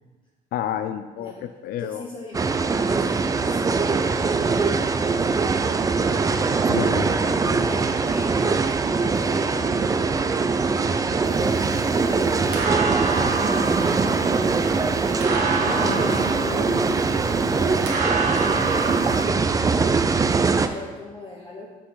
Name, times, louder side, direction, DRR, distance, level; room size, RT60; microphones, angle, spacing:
voice 1, 0.5-1.3 1.6-2.0 6.7-7.6, left 10 dB, 65° left, 9 dB, 0.4 m, -30 dB
voice 2, 1.2-2.4 2.9-4.7 5.0-6.1 7.6-10.7 11.4-12.8 13.3-13.8 14.6-14.9 15.5-19.9 20.2-21.7, left 2 dB, 30° left, -3 dB, 1.0 m, -40 dB
sound 1, 2.3-20.7, right 4 dB, 20° right, 0.4 m, -22 dB
sound 2, 11.2-19.2, right 3 dB, 85° right, 1.5 m, -29 dB
6.4 x 5.9 x 4.8 m, 1.3 s
cardioid pair, 110°, 17 cm